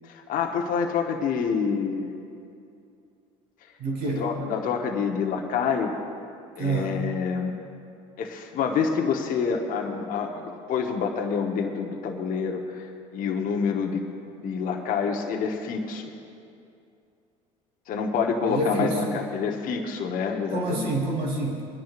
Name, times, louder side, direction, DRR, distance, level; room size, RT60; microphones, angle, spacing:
voice 1, 0.1-2.1 4.2-5.9 6.6-7.5 8.2-14.0 14.4-16.1 17.9-20.9, left 5 dB, 55° left, 2 dB, 1.1 m, -27 dB
voice 2, 3.8-4.3 6.6-7.0 18.5-19.0 20.5-21.7, right 2 dB, 65° right, -2 dB, 3.0 m, -27 dB
24.0 x 10.5 x 2.5 m, 2.5 s
hypercardioid pair, 70°, 17 cm